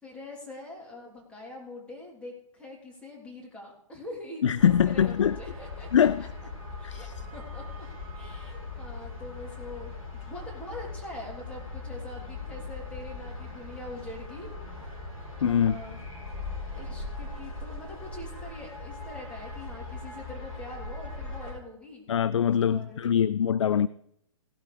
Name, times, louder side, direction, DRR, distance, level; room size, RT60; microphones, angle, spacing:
voice 1, 0.0-6.3 6.8-7.6 8.1-15.0 15.4-16.0 16.7-22.1 22.6-23.0, left 2 dB, 5° left, 3.4 m, -44 dB
voice 2, 4.4-5.4 5.9-6.3 6.8-7.1 15.4-15.8 22.1-23.9, left 8 dB, 60° left, 0.4 m, -23 dB
sound 1, 4.6-21.5, left 3 dB, 85° left, 4.4 m, -40 dB
17.0 x 12.5 x 3.4 m
figure-of-eight pair, 120°, 18 cm